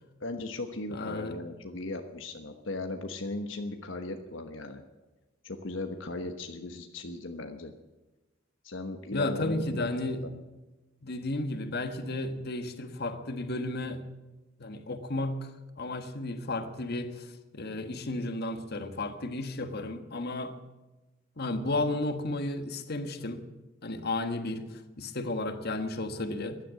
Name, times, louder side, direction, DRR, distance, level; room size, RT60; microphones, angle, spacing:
voice 1, 0.2-4.8 5.4-7.7 8.6-10.3, left 2 dB, 75° left, 1.2 m, -37 dB
voice 2, 0.9-1.4 9.1-10.2 11.0-14.0 14.6-15.5 15.8-20.6 21.4-23.4 23.8-26.6, left 2 dB, 55° left, 1.5 m, -33 dB
16.0 x 11.0 x 7.7 m
head